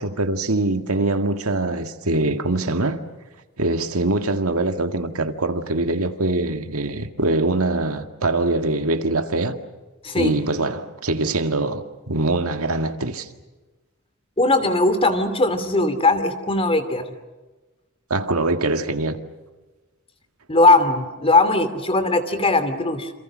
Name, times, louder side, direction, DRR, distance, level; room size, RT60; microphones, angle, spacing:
voice 1, 0.0-3.0 3.6-9.6 10.2-13.3 18.1-19.2, right 2 dB, 80° right, 2.0 m, -23 dB
voice 2, 10.0-10.4 14.4-17.1 20.5-23.1, left 2 dB, 25° left, 2.7 m, -19 dB
28.5 x 28.0 x 6.4 m
head